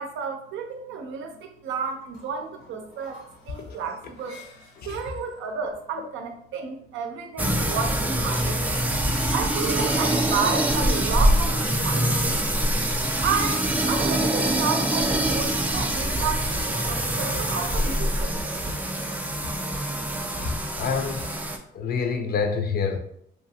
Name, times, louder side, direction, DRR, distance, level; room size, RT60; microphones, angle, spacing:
voice 1, 0.0-3.2 3.5-4.4 4.8-8.8 9.3-12.6 13.2-18.4, right 6 dB, 80° right, 5 dB, 0.5 m, -31 dB
sound 1, 1.8-6.2 7.6-11.2 12.9-20.6, left 3 dB, 90° left, 1.0 m, -47 dB
sound 2, 7.4-21.6, right 1 dB, 10° right, 0.3 m, -24 dB
voice 2, 20.8-21.3 21.7-23.0, left 5 dB, 50° left, 6 dB, 0.5 m, -26 dB
2.8 x 2.4 x 2.7 m, 0.69 s
cardioid pair, 90°, 20 cm